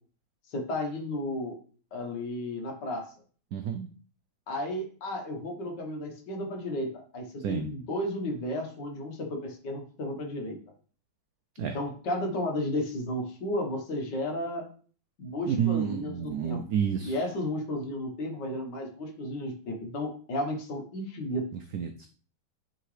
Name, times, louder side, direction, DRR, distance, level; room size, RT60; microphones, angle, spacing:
voice 1, 0.5-1.5 1.9-3.1 4.5-10.6 11.6-14.6 15.2-16.6 17.0-21.5, left 1 dB, 65° left, 2 dB, 1.8 m, -33 dB
voice 2, 3.5-3.9 7.4-7.7 11.6-11.8 15.5-17.2 21.7-22.1, right 8 dB, 85° right, 6 dB, 0.8 m, -29 dB
9.1 x 3.9 x 3.2 m, 0.43 s
omnidirectional pair, 2.1 m